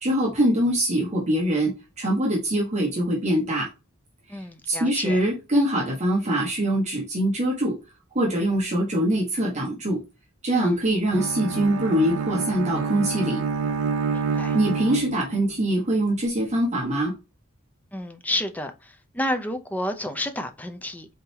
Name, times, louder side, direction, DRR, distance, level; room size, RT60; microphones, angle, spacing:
voice 1, 0.0-1.7 2.0-3.7 4.7-7.7 8.1-10.0 10.4-13.4 14.5-17.1, right 1 dB, 35° right, 1.2 m, -23 dB
voice 2, 4.3-5.2 10.6-10.8 14.1-14.6 17.9-21.1, left 1 dB, 5° left, 0.5 m, -30 dB
Bowed string instrument, 11.1-15.5, right 5 dB, 90° right, 0.6 m, -28 dB
4.1 x 3.9 x 2.7 m
head